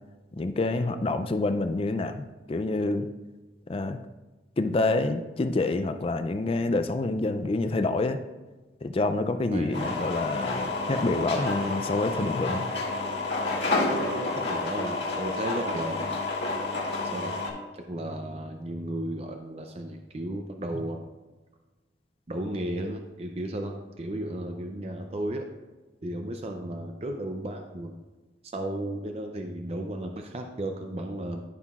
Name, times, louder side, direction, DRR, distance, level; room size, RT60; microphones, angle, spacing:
voice 1, 0.4-3.1 3.7-4.0 4.6-8.2 8.8-12.7, left 2 dB, 30° left, 9 dB, 0.3 m, -27 dB
voice 2, 9.5-10.0 13.8-16.1 17.1-17.4 17.7-21.0 22.3-25.5 26.0-27.9 28.5-31.4, right 1 dB, 35° right, 4 dB, 0.5 m, -34 dB
sound 1, 9.7-17.5, left 2 dB, 75° left, 1.8 m, -30 dB
13.5 x 5.7 x 2.4 m, 1.2 s
head